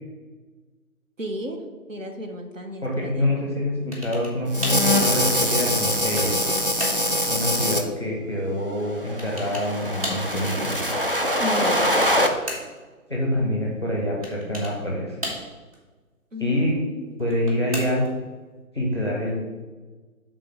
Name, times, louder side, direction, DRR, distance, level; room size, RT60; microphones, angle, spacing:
voice 1, 1.2-3.3 11.4-11.9 16.3-17.1, left 1 dB, 60° right, 3 dB, 1.1 m, -33 dB
voice 2, 2.8-6.3 7.3-10.7 13.1-15.2 16.4-16.8 17.2-18.0 18.7-19.4, left 1 dB, 20° left, -3 dB, 0.8 m, -26 dB
sound 1, 3.9-4.4 4.6-4.9 5.5-6.4 6.8-7.1 9.2-9.7 10.0-10.3 11.7-12.8 14.2-14.8 15.2-15.8 17.2-18.2, equal, 25° right, 1.1 m, -34 dB
sound 2, 4.5-7.8 8.9-12.3, equal, 40° right, 0.5 m, -23 dB
6.6 x 3.7 x 5.2 m, 1.3 s
figure-of-eight pair, 150°, 44 cm